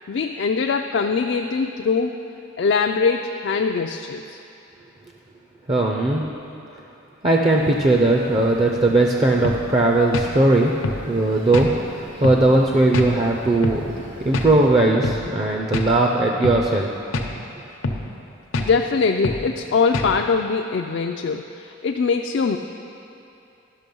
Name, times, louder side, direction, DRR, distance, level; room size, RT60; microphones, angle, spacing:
voice 1, 0.1-2.2 2.6-4.4 18.6-22.6, left 5 dB, 60° left, 3 dB, 0.3 m, -22 dB
voice 2, 5.7-6.3 7.2-10.7 11.1-11.7 12.2-13.9 14.2-16.9, right 2 dB, 30° right, 0 dB, 0.5 m, -18 dB
sound 1, 7.4-14.7, right 1 dB, 70° right, 2.0 m, -41 dB
sound 2, 9.4-9.6 10.1-10.3 10.8-11.0 11.5-11.7 12.2-12.4 12.9-13.1 13.6-13.8 14.3-14.5 15.0-15.2 15.7-15.9 16.4-16.6 17.1-17.3 17.8-18.0 18.5-18.7 19.2-19.4 19.9-20.1, left 2 dB, 90° left, 0.8 m, -24 dB
11.5 x 6.2 x 5.3 m, 2.8 s
head